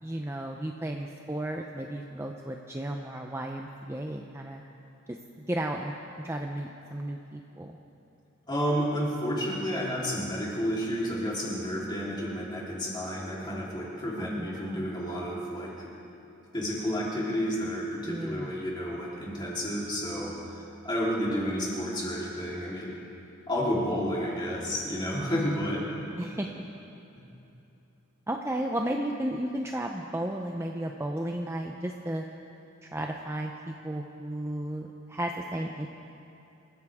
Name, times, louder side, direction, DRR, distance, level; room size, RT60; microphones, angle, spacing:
voice 1, 0.0-4.6 5.1-5.9 6.2-7.8 14.2-14.9 18.1-18.7 26.2-26.6 28.3-32.2 32.8-35.9, right 1 dB, 10° right, 2 dB, 0.6 m, -34 dB
voice 2, 8.5-15.9 16.5-22.9 23.5-25.8 27.1-27.2, equal, 20° left, -6 dB, 3.6 m, -31 dB
26.5 x 14.5 x 3.6 m, 2.9 s
head